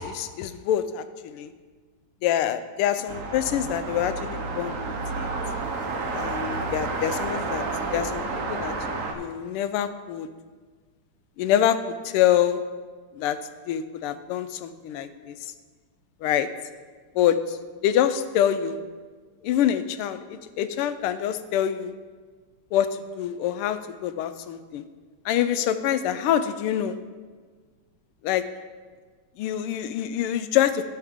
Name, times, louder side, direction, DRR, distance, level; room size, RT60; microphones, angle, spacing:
voice 1, 0.0-1.5 2.2-5.3 6.1-7.7 7.9-8.7 9.1-10.3 11.4-12.6 13.1-13.4 13.7-15.5 16.2-16.5 17.1-18.8 19.4-21.9 22.7-24.8 25.2-27.0 28.2-28.5 29.4-30.8, left 10 dB, 90° left, 11 dB, 1.5 m, -26 dB
sound 1, 3.1-9.1, right 3 dB, 55° right, 1.0 m, -30 dB
15.5 x 5.6 x 3.6 m, 1.5 s
omnidirectional pair, 2.4 m